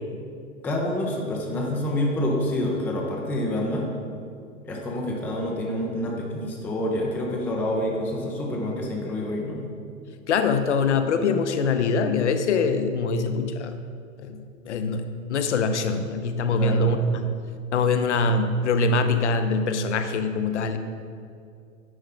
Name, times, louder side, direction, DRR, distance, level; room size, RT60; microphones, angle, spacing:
voice 1, 0.6-3.9 4.6-9.6 16.5-17.0, left 1 dB, 5° left, -1 dB, 0.4 m, -27 dB
voice 2, 10.3-13.8 14.2-14.4 14.6-17.3 17.7-20.8, left 3 dB, 55° left, 8 dB, 0.7 m, -23 dB
9.5 x 5.3 x 3.7 m, 2.3 s
figure-of-eight pair, 100°, 41 cm